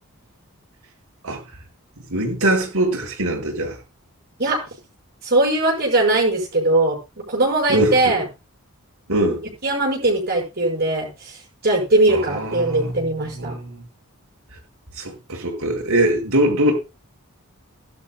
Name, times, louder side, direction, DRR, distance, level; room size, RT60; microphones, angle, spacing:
voice 1, 2.1-3.8 7.7-8.1 9.1-9.4 12.1-13.0 13.3-13.8 14.9-16.7, right 1 dB, 70° right, 4.9 m, -22 dB
voice 2, 5.2-7.0 7.3-8.2 9.6-13.6, right 2 dB, 45° right, 5.9 m, -20 dB
18.5 x 12.0 x 2.3 m
head